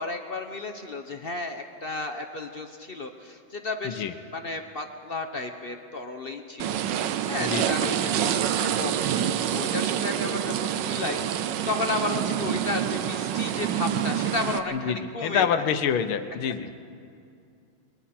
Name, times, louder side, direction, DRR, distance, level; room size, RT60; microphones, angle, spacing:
voice 1, 0.0-4.0 4.3-6.8 7.3-8.4 8.8-15.7, left 2 dB, 45° left, 5 dB, 0.7 m, -33 dB
sound 1, 6.6-14.6, right 10 dB, 70° right, 1.3 m, -27 dB
voice 2, 7.4-7.8 14.7-16.7, left 7 dB, 85° left, 9 dB, 1.8 m, -27 dB
28.0 x 22.0 x 4.3 m, 2.4 s
omnidirectional pair, 2.2 m